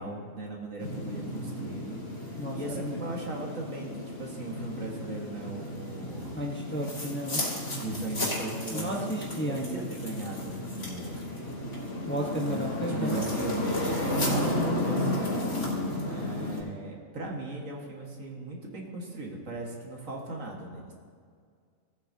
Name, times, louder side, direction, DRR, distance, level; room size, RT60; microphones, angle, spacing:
voice 1, 0.0-6.4 7.8-9.1 9.4-11.2 12.5-15.6 16.1-20.9, right 2 dB, 75° right, -1 dB, 2.1 m, -38 dB
sound 1, 0.8-16.6, left 1 dB, 60° left, 3.0 m, -33 dB
voice 2, 2.4-3.0 6.3-7.6 8.7-9.9 12.0-13.2, equal, 10° left, -2 dB, 1.0 m, -33 dB
18.0 x 8.7 x 2.8 m, 2.1 s
omnidirectional pair, 1.4 m